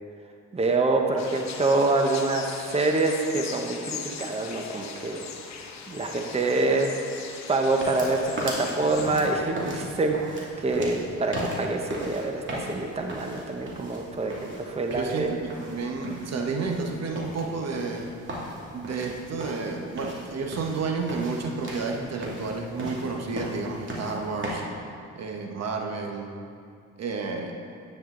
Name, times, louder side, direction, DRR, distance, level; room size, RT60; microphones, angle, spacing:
voice 1, 0.5-5.3 5.9-6.9 7.5-15.3, right 2 dB, 20° right, 3 dB, 1.0 m, -26 dB
sound 1, 1.2-9.2, left 6 dB, 65° left, 1.1 m, -40 dB
sound 2, 7.7-24.5, right 1 dB, 40° right, 2.6 m, -38 dB
voice 2, 14.9-18.1 18.7-24.6 25.1-26.3 27.0-27.6, right 4 dB, 60° right, 2 dB, 1.2 m, -31 dB
11.0 x 9.2 x 3.9 m, 2.4 s
cardioid pair, 90°, 30 cm